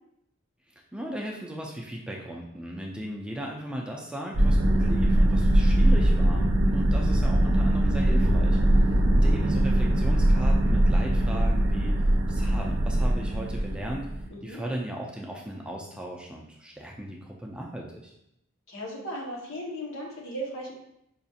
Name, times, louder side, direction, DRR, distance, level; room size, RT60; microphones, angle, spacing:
voice 1, 0.9-11.9 12.3-14.1 14.4-18.1, right 1 dB, 5° right, -1 dB, 0.3 m, -37 dB
sound 1, 4.3-14.3, right 1 dB, 80° right, 0.5 m, -22 dB
voice 2, 18.7-20.7, equal, 90° left, -2 dB, 1.0 m, -36 dB
5.0 x 2.3 x 2.7 m, 0.81 s
head